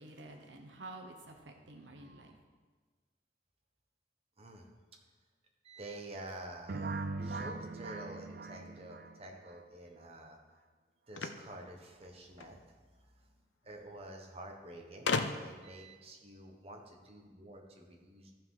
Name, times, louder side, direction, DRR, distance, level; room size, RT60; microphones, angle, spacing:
voice 1, 0.0-2.4, right 2 dB, 80° right, 4 dB, 1.1 m, -50 dB
voice 2, 4.4-4.7 5.6-10.4 11.1-13.3 13.6-18.3, right 1 dB, 30° right, 1 dB, 1.3 m, -49 dB
sound 1, 6.7-9.6, right 3 dB, 50° right, 0.5 m, -40 dB
sound 2, 11.1-12.6 13.7-13.8 14.0-14.1 15.1-15.7, left 4 dB, 75° left, 0.6 m, -35 dB
14.0 x 5.6 x 4.9 m, 1.4 s
head